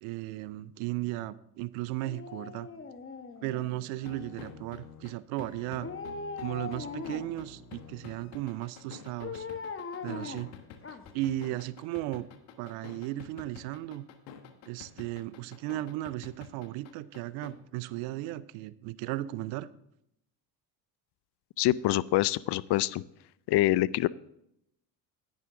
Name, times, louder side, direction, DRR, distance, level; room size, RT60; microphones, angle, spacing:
voice 1, 0.0-2.7 3.4-5.9 6.4-9.5 10.0-10.5 11.1-12.3 12.6-14.1 14.7-19.7, right 16 dB, 85° right, 18 dB, 0.7 m, -35 dB
Dog, 2.0-4.1 5.8-7.5 9.2-11.3 11.7-11.8, left 5 dB, 25° left, 1.2 m, -40 dB
sound 1, 4.0-17.5, left 7 dB, 85° left, 1.3 m, -48 dB
voice 2, 21.6-23.0 23.5-24.1, left 16 dB, 60° left, 20 dB, 0.5 m, -25 dB
10.5 x 9.4 x 3.8 m, 0.78 s
supercardioid pair, 70°, 47 cm